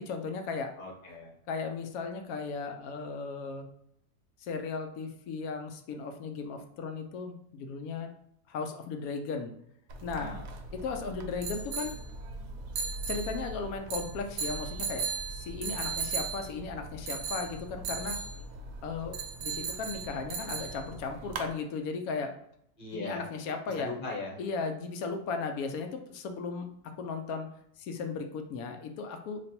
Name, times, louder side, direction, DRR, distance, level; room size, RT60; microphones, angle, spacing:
voice 1, 0.0-0.7 1.5-3.7 4.4-8.1 8.5-9.5 10.0-10.3 10.7-11.9 13.1-18.2 18.8-22.3 22.9-23.9 24.4-26.7 27.0-27.5 27.8-29.4, left 4 dB, 70° left, 5 dB, 1.0 m, -36 dB
voice 2, 0.8-1.3 10.1-10.4 22.8-23.3 23.8-24.4, left 2 dB, 40° left, -2 dB, 1.0 m, -39 dB
sound 1, 9.9-21.5, right 4 dB, 70° right, 1.0 m, -37 dB
3.2 x 2.5 x 4.2 m, 0.72 s
omnidirectional pair, 1.7 m